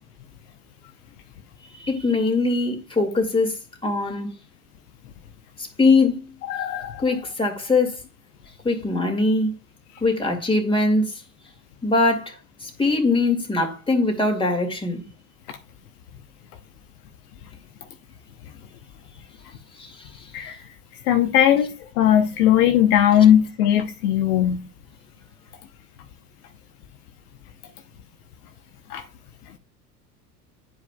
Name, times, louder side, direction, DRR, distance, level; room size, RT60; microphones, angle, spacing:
voice 1, 1.7-4.3 5.6-6.3 7.0-8.0 8.6-9.5 10.0-11.2 11.8-15.0 19.8-20.3, left 3 dB, 10° left, 2.3 m, -22 dB
voice 2, 6.4-7.0 20.3-20.6 21.1-21.7 22.0-24.6 28.9-29.0, left 10 dB, 70° left, 1.0 m, -18 dB
11.0 x 4.8 x 2.3 m
hypercardioid pair, 75°, 47 cm